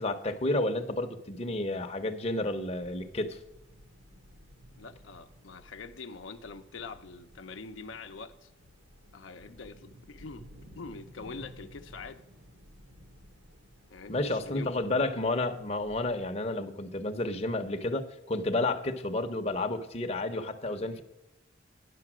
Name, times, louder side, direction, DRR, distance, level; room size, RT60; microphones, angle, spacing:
voice 1, 0.0-3.4 14.1-21.0, left 2 dB, 35° left, 5 dB, 0.7 m, -31 dB
sound 1, 2.8-16.3, equal, 65° right, 1.3 m, -55 dB
voice 2, 4.8-8.5 9.1-10.4 10.8-12.2 13.9-14.8, left 4 dB, 80° left, 7 dB, 0.6 m, -44 dB
10.0 x 6.6 x 6.0 m, 0.93 s
head